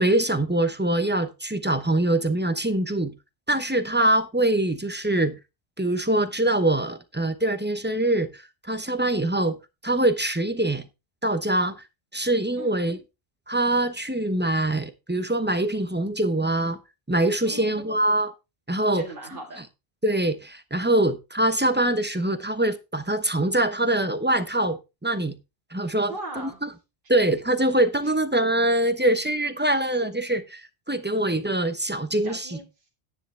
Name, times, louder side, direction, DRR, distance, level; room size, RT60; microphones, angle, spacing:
voice 1, 0.0-3.1 3.5-5.3 5.8-8.4 8.7-9.6 9.8-10.8 11.2-11.7 12.1-13.0 13.5-16.8 17.1-18.3 18.7-19.1 20.0-25.3 25.7-26.7 27.1-32.5, right 1 dB, 10° right, 0.9 m, -24 dB
voice 2, 17.4-17.9 18.9-19.6 26.1-26.6 32.2-32.9, right 2 dB, 55° right, 2.0 m, -39 dB
10.0 x 9.9 x 3.4 m
omnidirectional pair, 1.0 m